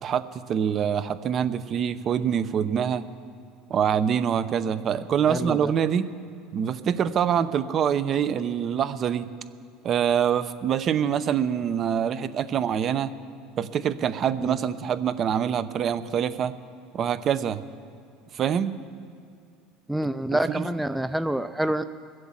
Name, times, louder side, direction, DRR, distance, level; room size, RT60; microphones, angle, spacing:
voice 1, 0.0-3.0 3.7-6.1 6.5-9.3 9.8-13.1 13.6-16.5 16.9-17.6 18.3-18.7 20.3-20.7, right 8 dB, 45° right, 13 dB, 0.8 m, -25 dB
voice 2, 5.3-5.7 14.4-14.6 19.9-21.9, right 1 dB, 5° right, 11 dB, 0.5 m, -27 dB
21.5 x 8.0 x 7.4 m, 2.4 s
supercardioid pair, 100°, 0 cm